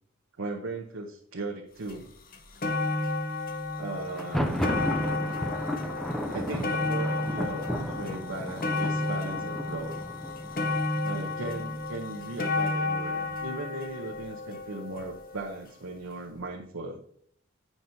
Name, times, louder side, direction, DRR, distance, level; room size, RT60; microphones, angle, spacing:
voice 1, 0.4-2.1 3.7-4.6 6.3-10.0 11.0-17.0, right 2 dB, 70° right, 1 dB, 0.8 m, -37 dB
sound 1, 1.9-2.0 2.3-15.5 16.3-16.4, left 2 dB, 45° left, 0.8 m, -32 dB
Thunder, 4.1-11.8, equal, ahead, 0.5 m, -34 dB
9.1 x 5.9 x 2.7 m, 0.65 s
head